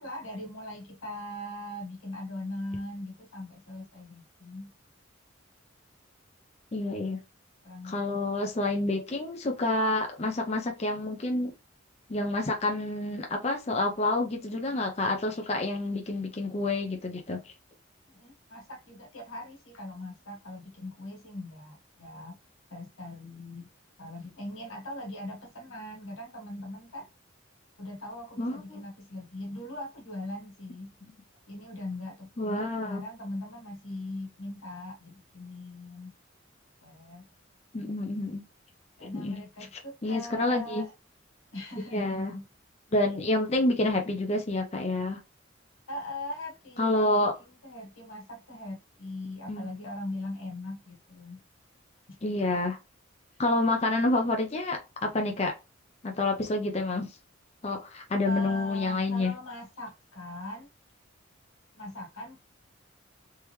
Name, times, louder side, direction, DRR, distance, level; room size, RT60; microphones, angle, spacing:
voice 1, 0.0-4.7 7.6-8.2 18.1-22.4 22.7-23.7 24.0-27.1 27.8-31.0 31.5-36.1 36.8-37.3 39.0-40.9 41.5-42.5 45.9-51.4 52.1-52.4 58.2-60.7 61.8-62.4, left 1 dB, 90° left, 1.3 m, -40 dB
voice 2, 6.7-7.2 7.8-11.5 12.1-17.5 28.4-28.8 32.4-33.0 37.7-38.4 39.1-39.3 40.0-40.8 41.9-42.3 42.9-45.2 46.8-47.3 49.5-49.7 52.2-52.8 53.4-55.5 56.0-57.2 57.6-59.3, left 2 dB, 35° left, 0.5 m, -28 dB
3.4 x 2.9 x 3.1 m
head